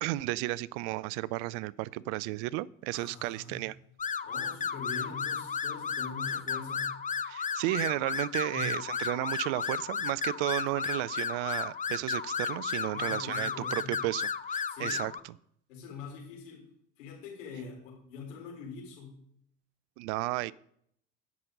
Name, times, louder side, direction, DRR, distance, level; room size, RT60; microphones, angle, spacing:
voice 1, 0.0-3.7 7.3-15.1 20.0-20.5, right 18 dB, 70° right, 22 dB, 0.5 m, -33 dB
voice 2, 2.9-3.6 4.2-7.0 8.5-8.7 12.9-14.0 14.7-15.1 15.7-16.7 17.0-19.2, left 4 dB, 80° left, -2 dB, 4.5 m, -43 dB
sound 1, 4.0-15.2, left 6 dB, 20° left, 0.6 m, -34 dB
16.0 x 6.1 x 3.9 m, 0.69 s
hypercardioid pair, 65°, 37 cm